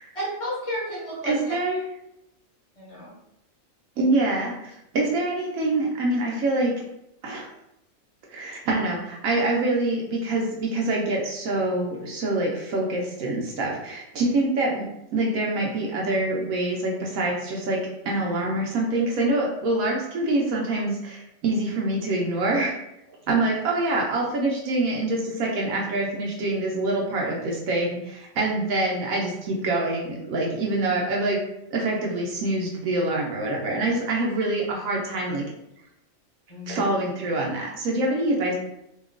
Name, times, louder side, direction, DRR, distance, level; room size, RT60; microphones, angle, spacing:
voice 1, 0.1-1.6 2.8-3.1 36.5-36.9, equal, 30° left, -5 dB, 0.8 m, -32 dB
voice 2, 1.2-1.8 4.0-6.7 7.2-7.5 8.3-22.7 23.1-31.4 31.7-35.4 36.7-38.5, right 2 dB, 80° right, -2 dB, 1.0 m, -25 dB
2.8 x 2.3 x 2.4 m, 0.82 s
omnidirectional pair, 1.4 m